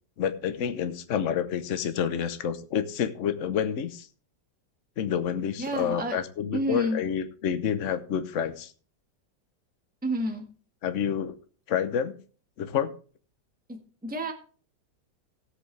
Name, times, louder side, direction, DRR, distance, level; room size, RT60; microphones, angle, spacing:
voice 1, 0.2-4.1 5.0-8.7 10.8-11.4 11.7-12.1 12.6-12.9, left 8 dB, 50° left, 11 dB, 1.1 m, -28 dB
voice 2, 5.6-6.2 6.5-7.0 10.0-10.4 13.7-14.3, right 1 dB, 5° right, 3 dB, 1.4 m, -30 dB
17.0 x 8.1 x 3.3 m, 0.40 s
omnidirectional pair, 2.0 m